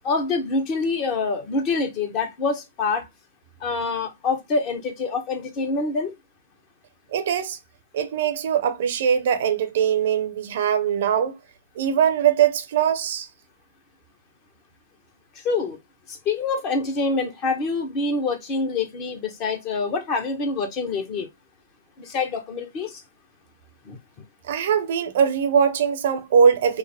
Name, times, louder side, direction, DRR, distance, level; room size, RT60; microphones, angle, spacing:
voice 1, 0.0-3.1 3.6-6.2 15.3-15.8 16.1-21.3 22.0-23.0 23.8-24.0, left 3 dB, 30° left, 1.0 m, -26 dB
voice 2, 7.1-7.6 7.9-11.3 11.8-13.3 24.4-26.8, right 7 dB, 50° right, 0.7 m, -21 dB
5.0 x 2.1 x 3.4 m
figure-of-eight pair, 115°, 0 cm